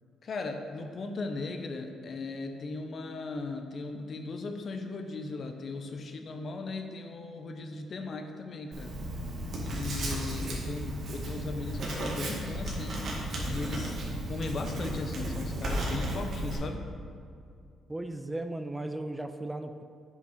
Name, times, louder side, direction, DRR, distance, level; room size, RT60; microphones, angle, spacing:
voice 1, 0.2-9.0 9.6-13.1 13.4-14.0 14.3-16.8, left 3 dB, 50° left, 5 dB, 0.8 m, -37 dB
Writing, 8.7-16.6, right 1 dB, 60° right, 1.9 m, -34 dB
voice 2, 17.9-19.8, right 2 dB, 10° right, 8 dB, 0.4 m, -36 dB
8.0 x 6.1 x 4.2 m, 2.3 s
cardioid pair, 90°, 0 cm